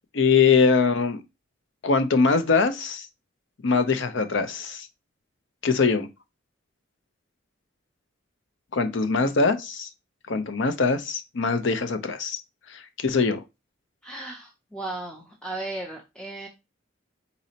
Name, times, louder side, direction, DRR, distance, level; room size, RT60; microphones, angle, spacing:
voice 1, 0.1-1.2 1.8-3.1 3.6-4.9 5.6-6.1 8.7-9.9 10.3-12.4 12.7-13.4, left 4 dB, 65° left, 0.5 m, -22 dB
voice 2, 14.0-16.5, right 2 dB, 5° left, 0.4 m, -36 dB
4.1 x 4.0 x 2.7 m
head